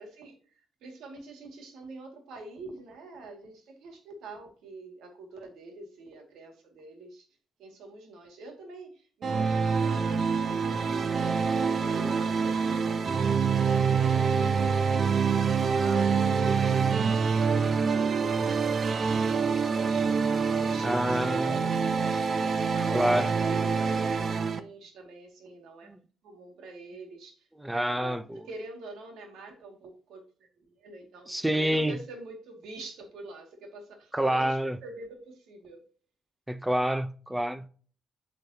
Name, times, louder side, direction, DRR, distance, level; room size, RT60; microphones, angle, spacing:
voice 1, 0.0-7.3 7.6-13.8 14.5-22.2 22.7-30.2 30.7-35.8, right 3 dB, 80° right, 2.2 m, -46 dB
sound 1, 9.2-24.6, right 5 dB, 45° right, 0.7 m, -26 dB
voice 2, 20.8-21.7 22.9-23.3 25.9-26.0 27.6-28.4 31.3-32.0 34.1-34.8 36.5-37.7, equal, 5° right, 0.7 m, -27 dB
9.0 x 5.2 x 2.9 m
cardioid pair, 90°, 0 cm